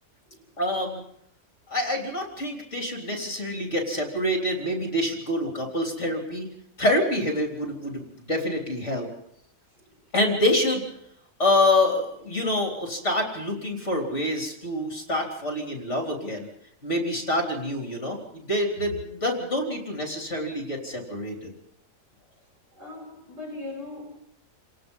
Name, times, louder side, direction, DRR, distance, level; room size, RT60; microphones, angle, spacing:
voice 1, 0.6-1.0 1.7-6.5 6.8-9.1 10.1-10.8 11.4-16.5 16.8-21.5, left 1 dB, 45° left, 3.9 m, -26 dB
voice 2, 22.8-24.2, left 2 dB, 75° right, 7.8 m, -39 dB
29.0 x 17.5 x 5.5 m
omnidirectional pair, 1.8 m